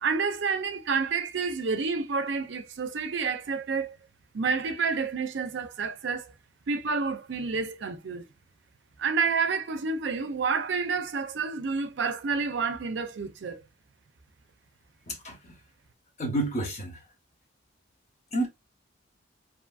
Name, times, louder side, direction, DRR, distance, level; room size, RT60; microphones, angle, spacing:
voice 1, 0.0-4.0 4.3-6.3 6.7-8.2 9.0-13.6, right 5 dB, 65° right, 0.5 m, -29 dB
voice 2, 15.1-15.6 16.2-17.0 18.3-18.5, right 1 dB, 35° left, 0.9 m, -30 dB
2.6 x 2.6 x 2.3 m
head